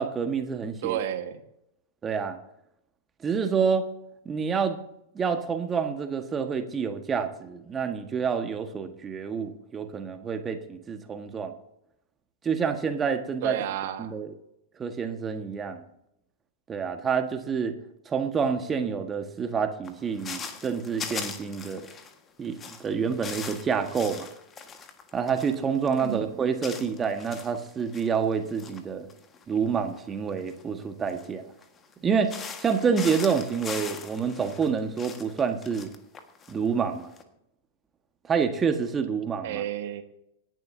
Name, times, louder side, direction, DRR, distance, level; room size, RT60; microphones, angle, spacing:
voice 1, 0.0-1.0 2.0-2.4 3.2-3.8 4.2-4.8 5.1-11.5 12.4-13.6 14.0-14.3 14.8-15.8 16.7-17.7 18.0-21.8 22.4-24.3 25.1-29.1 29.5-31.4 32.0-35.9 36.5-37.1 38.3-39.6, right 6 dB, 20° right, 7 dB, 1.6 m, -28 dB
voice 2, 0.8-1.4 13.4-14.1 26.0-26.3 39.4-40.0, right 11 dB, 50° right, 8 dB, 1.6 m, -31 dB
sound 1, 19.8-22.2 22.4-28.8 29.1-31.9 32.2-37.2, left 6 dB, 20° left, 1.7 m, -40 dB
27.0 x 11.0 x 2.8 m, 0.81 s
figure-of-eight pair, 95°, 0 cm